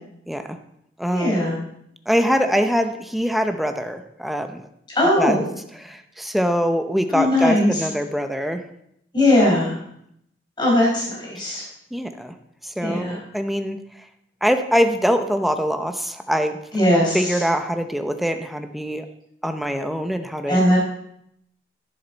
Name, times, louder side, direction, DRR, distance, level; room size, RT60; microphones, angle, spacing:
voice 1, 0.3-0.6 1.0-1.5 2.1-4.6 5.1-5.4 5.8-8.6 11.9-12.3 12.6-13.8 14.4-16.6 17.1-19.1 19.4-20.6, equal, ahead, 7 dB, 0.7 m, -23 dB
voice 2, 1.1-1.6 4.9-5.5 7.1-7.8 9.1-9.8 10.6-11.6 12.8-13.2 16.7-17.4 20.5-20.8, left 1 dB, 25° left, -4 dB, 4.7 m, -19 dB
11.5 x 10.0 x 4.0 m, 0.75 s
head